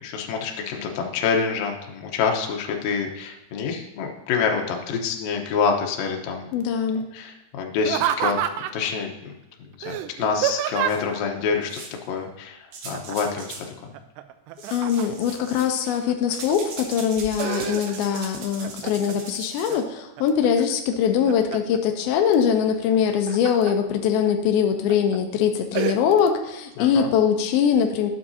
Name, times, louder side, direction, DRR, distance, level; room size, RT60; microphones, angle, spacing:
voice 1, 0.0-6.5 7.1-9.3 9.6-11.8 12.1-13.5 13.8-13.9 26.8-27.1, left 5 dB, 70° left, 2 dB, 2.3 m, -27 dB
voice 2, 6.5-7.0 14.7-28.1, left 8 dB, 90° left, 5 dB, 2.1 m, -22 dB
Laughter, 7.8-8.9 9.8-11.2 12.9-13.4 13.7-15.3 15.9-16.5 17.0-18.2 18.6-19.2 19.7-20.5 20.9-21.8 22.9-23.8 24.3-24.4 24.9-25.2 25.7-26.0, right 11 dB, 85° right, 2.5 m, -28 dB
sound 1, 10.9-11.0 11.7-12.1 12.7-13.7 14.6-16.1 16.3-19.8, right 4 dB, 65° right, 2.1 m, -39 dB
12.0 x 8.2 x 2.8 m, 0.95 s
omnidirectional pair, 5.2 m